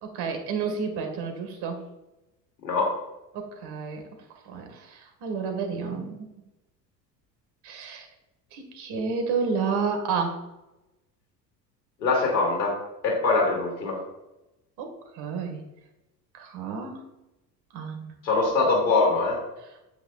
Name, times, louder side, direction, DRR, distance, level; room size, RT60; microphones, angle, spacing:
voice 1, 0.0-1.8 3.3-4.0 4.5-6.3 7.6-8.1 8.5-10.4 14.8-14.9 15.2-15.6 16.4-17.0 17.7-18.1, right 5 dB, 50° right, 4 dB, 2.0 m, -30 dB
voice 2, 2.6-3.0 12.0-12.8 13.0-14.0 18.2-19.4, left 3 dB, 75° left, 0 dB, 2.9 m, -23 dB
9.3 x 7.8 x 2.5 m, 0.95 s
hypercardioid pair, 70°, 50 cm